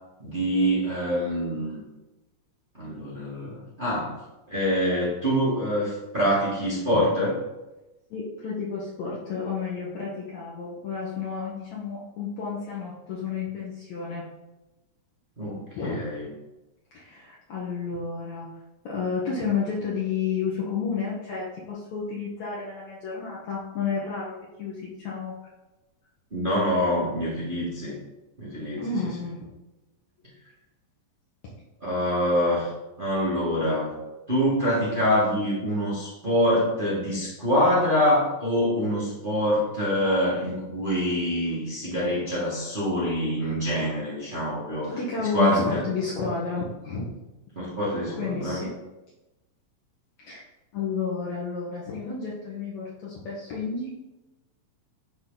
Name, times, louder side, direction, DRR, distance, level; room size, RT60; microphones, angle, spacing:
voice 1, 0.2-1.8 2.7-4.1 4.5-7.4 15.4-16.3 26.3-28.0 28.4-28.8 31.8-32.7 33.0-33.9 34.3-45.0 45.3-45.8 47.5-48.6, equal, 25° right, -7 dB, 1.1 m, -25 dB
voice 2, 8.1-14.2 15.8-16.0 16.9-18.5 18.8-25.3 28.8-29.5 44.9-47.1 48.1-48.7 50.2-50.4 50.7-53.9, left 5 dB, 60° left, -6 dB, 2.2 m, -31 dB
11.0 x 3.9 x 3.9 m, 1.0 s
omnidirectional pair, 3.9 m